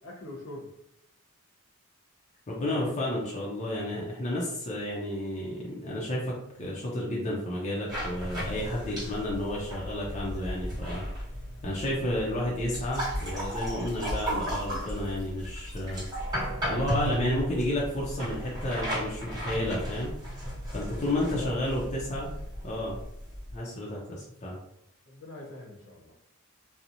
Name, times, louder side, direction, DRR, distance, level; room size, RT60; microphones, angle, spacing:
voice 1, 0.0-0.7 21.0-21.5 25.1-26.1, left 2 dB, 60° left, -2 dB, 0.8 m, -43 dB
voice 2, 2.5-11.1 11.6-16.0 16.7-20.1 20.7-22.3 22.6-23.0 23.5-24.6, left 1 dB, 30° left, -4 dB, 0.5 m, -31 dB
sound 1, 7.9-23.6, equal, 20° right, 1.2 m, -35 dB
2.8 x 2.0 x 2.5 m, 0.79 s
head